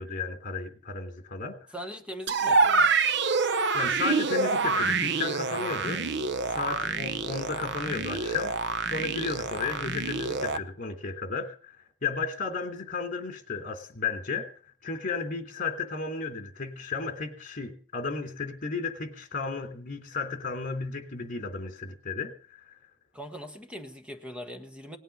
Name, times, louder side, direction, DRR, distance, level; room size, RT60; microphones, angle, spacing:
voice 1, 0.0-1.6 3.7-6.0 6.5-8.6 8.8-11.8 12.0-14.5 14.8-22.7, left 4 dB, 40° left, 3.2 m, -33 dB
voice 2, 1.7-2.9 23.1-25.0, equal, 5° right, 1.5 m, -41 dB
sound 1, 2.3-10.6, right 4 dB, 55° right, 0.9 m, -27 dB
19.0 x 9.1 x 7.0 m
head